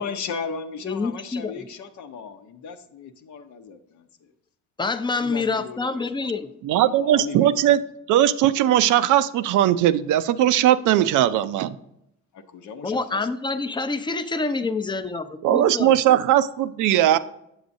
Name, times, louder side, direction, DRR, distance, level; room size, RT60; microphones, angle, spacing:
voice 1, 0.0-4.3 5.2-6.4 6.8-7.5 12.3-13.3, left 5 dB, 70° left, 8 dB, 0.8 m, -36 dB
voice 2, 0.8-1.5 4.8-6.4 12.8-15.9, left 3 dB, 15° left, 10 dB, 0.5 m, -27 dB
voice 3, 6.6-7.8 8.1-11.8 15.4-17.2, right 12 dB, 80° right, 13 dB, 0.5 m, -19 dB
7.9 x 7.1 x 2.6 m, 0.81 s
cardioid pair, 90°, 30 cm